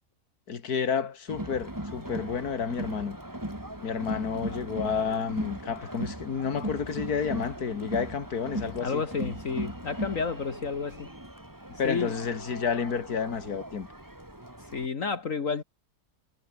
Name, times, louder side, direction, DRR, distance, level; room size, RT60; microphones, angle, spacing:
voice 1, 0.5-3.2 3.8-9.0 11.8-13.9, left 6 dB, 70° left, 2.4 m, -30 dB
Crowd, 1.3-14.9, right 1 dB, 10° right, 3.2 m, -38 dB
voice 2, 8.8-11.1 11.8-12.1 14.6-15.6, left 5 dB, 55° left, 2.0 m, -31 dB
omnidirectional pair, 1.7 m